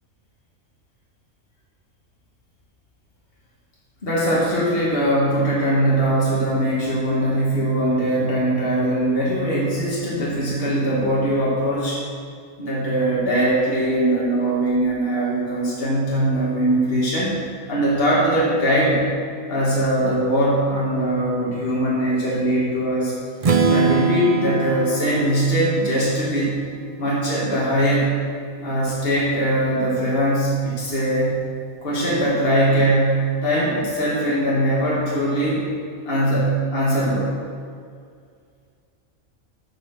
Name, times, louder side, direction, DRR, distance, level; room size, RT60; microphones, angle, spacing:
voice 1, 4.0-12.0 12.6-17.3 17.7-19.0 19.5-23.1 23.7-26.6 27.0-28.1 28.6-31.4 31.8-35.6 36.1-37.3, right 1 dB, 45° left, -6 dB, 1.9 m, -21 dB
Strum, 23.4-27.4, right 5 dB, 40° right, 0.5 m, -23 dB
7.7 x 7.0 x 6.1 m, 2.2 s
omnidirectional pair, 1.4 m